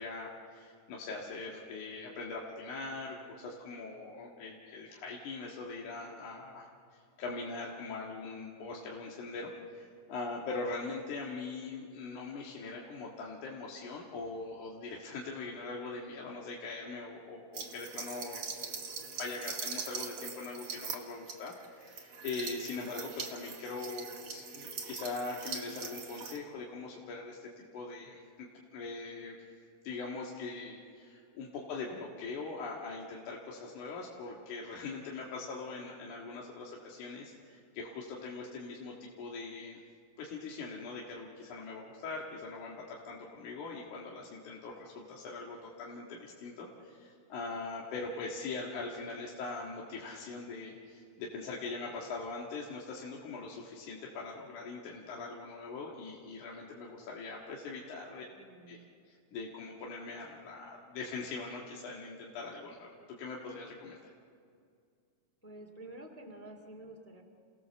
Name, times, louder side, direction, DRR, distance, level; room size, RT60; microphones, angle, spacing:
voice 1, 0.0-6.7 7.2-18.4 19.0-29.4 29.8-39.8 40.2-58.2 58.7-58.8 59.1-62.9 63.2-64.1, left 3 dB, 65° left, -3 dB, 3.1 m, -42 dB
sound 1, 17.5-26.4, right 5 dB, 55° right, 2.7 m, -42 dB
voice 2, 58.1-58.8 65.4-67.2, right 1 dB, 5° left, 2 dB, 1.7 m, -50 dB
30.0 x 18.0 x 7.0 m, 2.2 s
omnidirectional pair, 4.0 m